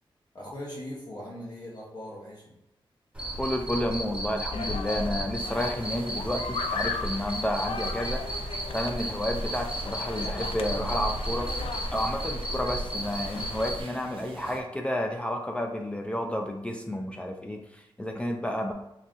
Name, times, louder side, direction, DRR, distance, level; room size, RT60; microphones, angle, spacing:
voice 1, 0.3-2.5, left 1 dB, 50° left, -4 dB, 0.7 m, -40 dB
Cricket, 3.1-13.8, right 1 dB, 10° right, 0.8 m, -34 dB
voice 2, 3.4-11.5 11.9-18.7, left 1 dB, 15° left, 2 dB, 0.3 m, -31 dB
sound 1, 4.5-13.7, left 4 dB, 90° left, 0.4 m, -38 dB
sound 2, 5.4-14.6, right 2 dB, 75° right, 0.5 m, -42 dB
4.0 x 3.6 x 2.4 m, 0.87 s
wide cardioid pair, 170°, 9 cm